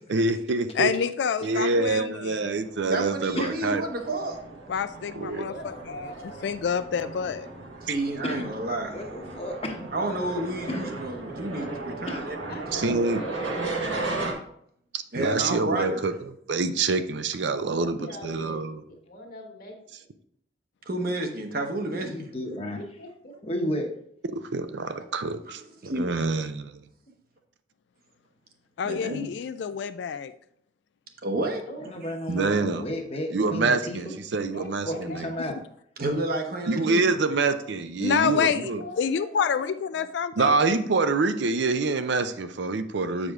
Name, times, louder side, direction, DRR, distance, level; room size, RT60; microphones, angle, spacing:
voice 1, 0.1-0.9 1.4-3.8 5.2-5.5 7.9-8.0 12.7-13.2 14.9-18.0 18.2-18.8 24.3-26.7 32.3-32.9 33.3-34.9 35.1-35.3 36.7-38.8 40.4-43.3, right 3 dB, 70° right, 10 dB, 0.5 m, -26 dB
voice 2, 0.8-2.5 4.7-5.7 6.0-6.1 6.4-7.5 28.8-30.3 38.0-38.7 39.0-40.6, left 7 dB, 65° left, 11 dB, 0.3 m, -27 dB
sound 1, 2.6-14.3, right 2 dB, 85° right, 1.5 m, -36 dB
voice 3, 2.9-4.4 7.8-9.0 9.9-12.6 15.1-16.1 20.9-22.3 25.5-25.6 25.8-26.1 28.8-29.2 31.2-31.6 36.0-37.0, right 2 dB, 50° right, 3 dB, 1.0 m, -30 dB
voice 4, 5.5-6.4 12.5-14.0 17.5-19.7 22.5-23.4 25.8-26.4 31.6-31.9 34.1-35.5 38.2-40.0 43.2-43.3, equal, 50° left, 1 dB, 1.5 m, -42 dB
voice 5, 8.9-9.8 10.7-10.8 12.1-12.2 21.9-22.8 23.4-23.9 31.8-34.1 34.8-35.5, left 1 dB, 30° left, 3 dB, 1.0 m, -32 dB
7.8 x 5.0 x 3.6 m, 0.70 s
head